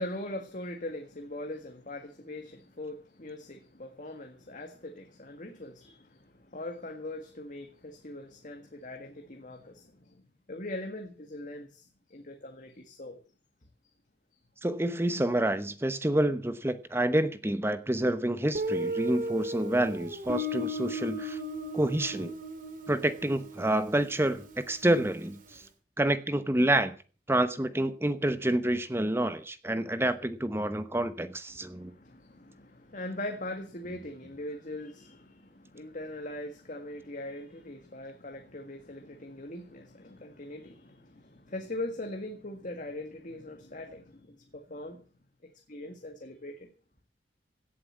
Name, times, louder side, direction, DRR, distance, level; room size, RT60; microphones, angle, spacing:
voice 1, 0.0-10.2 10.5-13.2 31.5-45.0 45.4-46.7, left 1 dB, 45° left, 1.8 m, -41 dB
voice 2, 14.6-21.4 21.7-22.3 22.9-25.6 26.0-26.9 27.3-31.9, right 1 dB, 15° right, 0.9 m, -28 dB
Guitar, 18.5-25.2, equal, 50° right, 2.4 m, -36 dB
17.0 x 7.7 x 7.4 m
head